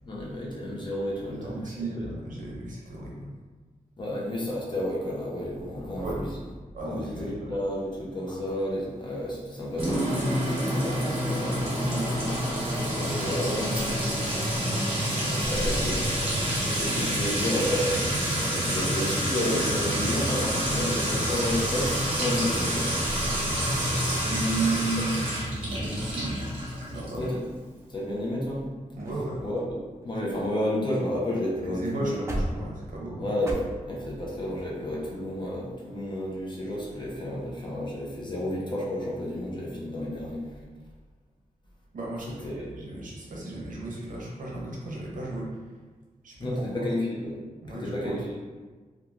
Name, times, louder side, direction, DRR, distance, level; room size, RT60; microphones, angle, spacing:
voice 1, 0.0-1.5 4.0-6.3 6.8-11.7 12.1-14.7 15.1-16.1 16.6-23.2 27.2-27.4 27.9-28.6 29.4-29.8 30.0-32.4 33.2-40.5 42.4-42.5 46.4-47.3 47.7-48.3, left 1 dB, 35° left, -5 dB, 0.6 m, -31 dB
voice 2, 1.2-3.3 6.0-6.2 6.7-7.5 11.6-12.4 24.2-26.4 26.6-27.3 28.9-29.4 31.6-33.3 41.9-45.6 46.2-46.9 47.6-48.3, right 2 dB, 70° right, -3 dB, 0.6 m, -34 dB
Sink (filling or washing) / Trickle dribble / Fill (with liquid), 9.8-27.2, equal, 40° right, 1.0 m, -28 dB
sound 1, 27.2-28.1 28.7-28.8 29.0-29.3 29.6-31.1 31.4-31.5 31.9-33.5, equal, 20° right, 0.3 m, -37 dB
2.9 x 2.3 x 2.4 m, 1.4 s
wide cardioid pair, 170°, 14 cm